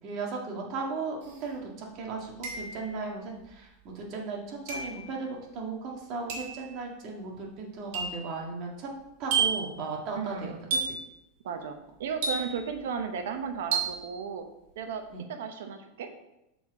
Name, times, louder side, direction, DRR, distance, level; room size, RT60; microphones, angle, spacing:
voice 1, 0.0-8.9 9.2-10.5 15.1-15.2, right 4 dB, 45° right, 0 dB, 1.7 m, -36 dB
sound 1, 1.3-1.4 2.4-3.0 4.7-5.0 6.3-6.6 7.9-8.3 9.3-9.7 10.7-11.1 12.2-12.8 13.7-14.1, right 5 dB, 65° right, 2.4 m, -30 dB
voice 2, 10.1-10.7 11.4-14.4 14.8-15.0 15.3-16.1, right 6 dB, 85° right, 6 dB, 0.9 m, -35 dB
7.1 x 4.3 x 4.8 m, 0.89 s
supercardioid pair, 135°, 0 cm